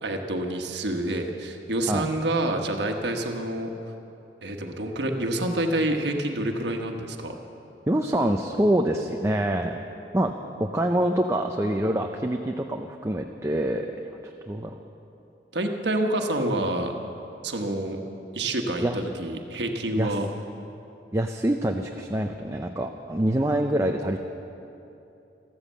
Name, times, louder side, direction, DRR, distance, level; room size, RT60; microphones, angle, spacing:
voice 1, 0.0-3.7 4.4-7.3 15.5-16.9 17.4-18.0 18.3-20.3, right 1 dB, 75° right, 3 dB, 1.3 m, -27 dB
voice 2, 7.9-9.8 10.1-10.3 10.6-13.9 14.5-14.8 18.8-19.0 20.0-20.2 21.1-24.2, right 1 dB, 15° right, 3 dB, 0.5 m, -25 dB
14.0 x 13.5 x 7.5 m, 2.9 s
head